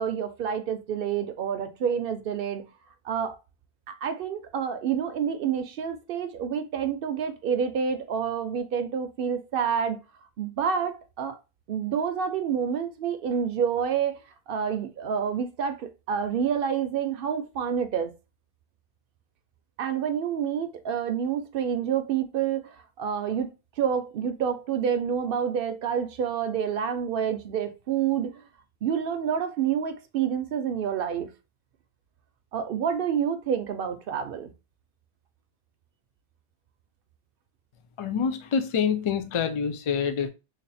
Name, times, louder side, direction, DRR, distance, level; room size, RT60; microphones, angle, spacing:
voice 1, 0.0-2.7 3.0-3.4 3.9-10.0 10.4-11.4 11.7-14.2 14.5-18.1 19.8-22.7 23.0-23.5 23.8-28.4 28.8-31.3 32.5-34.5, right 7 dB, 65° right, 0.7 m, -28 dB
voice 2, 38.0-40.3, left 6 dB, 50° left, 0.3 m, -26 dB
3.3 x 2.4 x 4.0 m
omnidirectional pair, 1.1 m